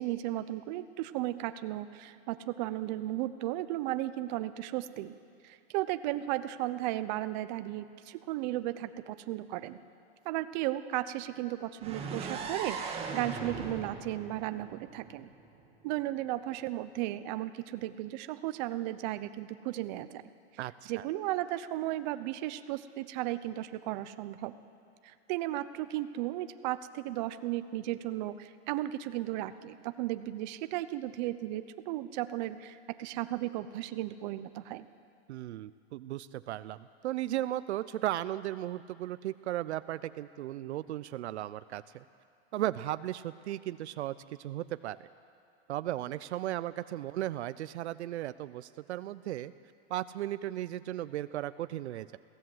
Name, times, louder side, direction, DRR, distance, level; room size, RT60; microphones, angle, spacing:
voice 1, 0.0-5.1 5.4-9.8 10.2-15.3 15.8-20.2 20.9-24.5 25.0-34.9, right 15 dB, 40° right, 12 dB, 0.8 m, -35 dB
sound 1, 11.8-15.7, right 5 dB, 15° right, 2.0 m, -39 dB
voice 2, 20.6-21.1 35.3-42.0 42.5-45.1 45.7-49.5 49.9-52.2, right 13 dB, 80° right, 15 dB, 0.6 m, -36 dB
22.0 x 16.5 x 7.8 m, 2.4 s
supercardioid pair, 150°, 34 cm